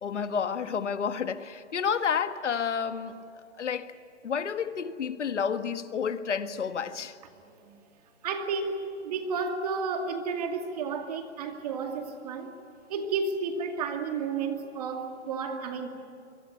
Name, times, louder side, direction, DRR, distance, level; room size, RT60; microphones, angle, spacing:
voice 1, 0.0-3.2 3.6-4.0 4.2-7.1, left 6 dB, 80° left, 1.7 m, -30 dB
voice 2, 7.4-7.8 8.2-12.5 12.9-15.9, right 4 dB, 35° right, 2.4 m, -32 dB
24.0 x 23.0 x 9.8 m
hypercardioid pair, 170°, 35 cm